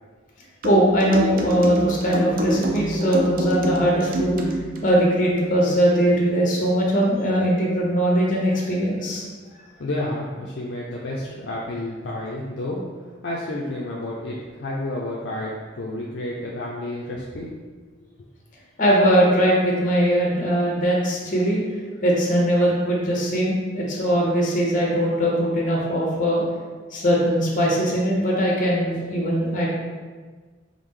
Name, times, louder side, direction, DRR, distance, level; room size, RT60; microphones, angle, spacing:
voice 1, 0.6-4.4 4.8-9.2 18.8-21.6 22.0-26.4 26.9-29.7, equal, 45° left, -3 dB, 0.9 m, -20 dB
sound 1, 0.6-4.9, right 1 dB, 50° right, 0.5 m, -27 dB
voice 2, 9.5-12.8 13.2-17.5, left 1 dB, 65° left, -4 dB, 0.5 m, -30 dB
4.8 x 2.1 x 3.6 m, 1.4 s
head